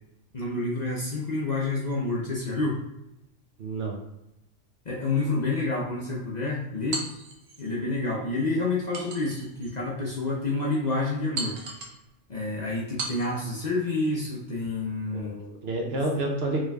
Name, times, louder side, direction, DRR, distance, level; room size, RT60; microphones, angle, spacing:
voice 1, 0.3-2.8 4.8-7.0 7.6-11.6 12.3-15.4, left 2 dB, 45° left, -4 dB, 0.7 m, -28 dB
voice 2, 3.6-4.0 15.1-16.7, right 2 dB, 60° right, 0 dB, 0.9 m, -29 dB
sound 1, 6.9-7.7 8.9-9.8 10.3-10.4 11.4-12.0 13.0-13.5, right 3 dB, 80° right, 1.2 m, -36 dB
4.8 x 3.2 x 2.3 m, 0.88 s
omnidirectional pair, 1.3 m